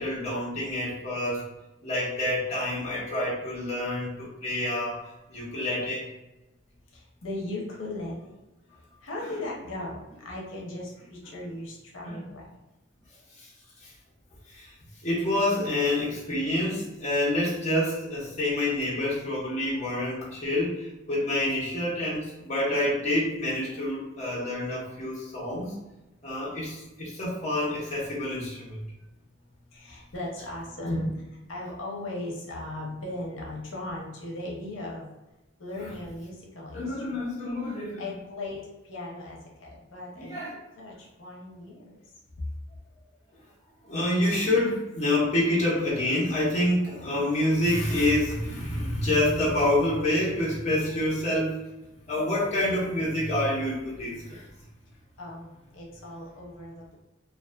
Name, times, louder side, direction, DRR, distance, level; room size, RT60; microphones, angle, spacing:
voice 1, 0.0-1.4 1.8-5.0 5.3-6.1 12.0-12.2 13.4-13.5 13.8-13.9 14.5-14.7 15.0-25.7 26.2-28.8 30.9-31.1 36.7-38.0 40.2-40.6 43.8-51.6 52.1-54.4, left 1 dB, 35° left, -6 dB, 0.8 m, -27 dB
voice 2, 6.9-8.5 9.0-12.6 26.4-26.6 29.2-35.1 35.6-37.3 37.7-42.0 55.2-57.0, left 2 dB, 80° left, -2 dB, 0.6 m, -38 dB
2.5 x 2.4 x 2.2 m, 1.0 s
head